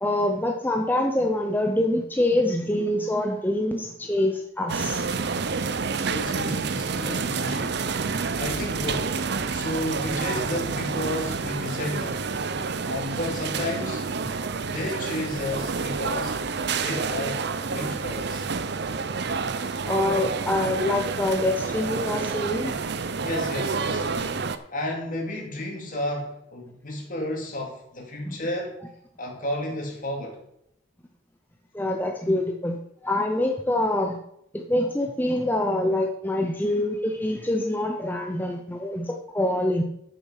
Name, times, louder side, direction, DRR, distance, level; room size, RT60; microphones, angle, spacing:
voice 1, 0.0-5.0 19.8-22.7 28.3-28.4 31.7-32.8 33.0-34.2 34.5-39.8, left 1 dB, 10° left, 3 dB, 0.7 m, -25 dB
sound 1, 4.7-24.6, right 4 dB, 55° right, 0.6 m, -29 dB
voice 2, 6.0-7.9 8.3-12.2 12.8-14.1 14.6-16.4 16.8-18.5 22.6-22.8 23.2-28.7 29.2-30.4, left 1 dB, 40° left, 0 dB, 2.5 m, -32 dB
9.7 x 6.9 x 6.3 m, 0.75 s
head